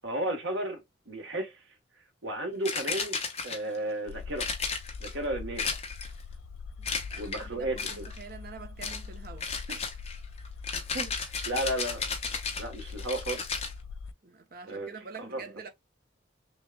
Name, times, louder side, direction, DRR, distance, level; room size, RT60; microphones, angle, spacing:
voice 1, 0.0-1.5 2.2-3.2 3.4-4.5 5.0-5.6 7.2-8.1 10.9-11.1 11.4-12.1 12.6-13.4 14.7-14.9 15.2-15.4, right 1 dB, 75° right, 1.2 m, -33 dB
sound 1, 2.7-3.8 4.4-5.1 5.6-6.2 6.8-7.4 7.8-8.2 8.8-9.1 9.4-13.7, left 5 dB, 30° left, 0.8 m, -34 dB
sound 2, 4.1-14.1, left 4 dB, 85° left, 0.4 m, -43 dB
voice 2, 6.8-10.0 14.2-15.7, right 4 dB, 45° right, 0.8 m, -46 dB
6.2 x 2.3 x 2.2 m
head